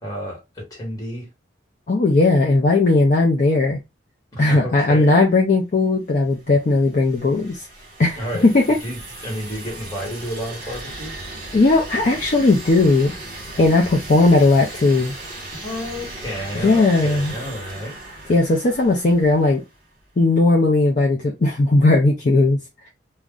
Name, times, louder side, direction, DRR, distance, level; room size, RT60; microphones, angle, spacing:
voice 1, 0.0-1.3 4.3-5.2 8.1-11.2 15.5-17.9, equal, 20° left, 1.4 m, -31 dB
voice 2, 1.9-3.8 4.4-7.7 8.0-8.6 11.5-13.1 13.6-15.1 16.5-17.3 18.3-19.6 20.2-22.6, left 2 dB, 45° left, 0.5 m, -17 dB
sound 1, 6.2-19.9, right 1 dB, 50° right, 1.1 m, -37 dB
2.4 x 2.2 x 3.5 m
head